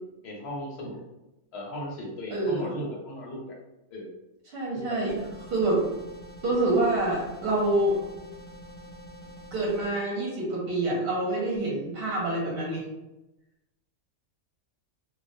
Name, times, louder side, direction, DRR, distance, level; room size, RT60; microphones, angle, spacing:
voice 1, 0.2-1.0 1.5-3.6 3.9-4.2 4.7-5.0, equal, 60° left, -2 dB, 0.9 m, -37 dB
voice 2, 2.3-2.7 4.5-5.2 5.5-5.8 6.4-8.0 9.5-12.8, right 2 dB, 60° right, -4 dB, 0.8 m, -26 dB
sound 1, 5.1-9.9, equal, 35° left, 0.4 m, -46 dB
2.3 x 2.1 x 2.6 m, 0.96 s
omnidirectional pair, 1.3 m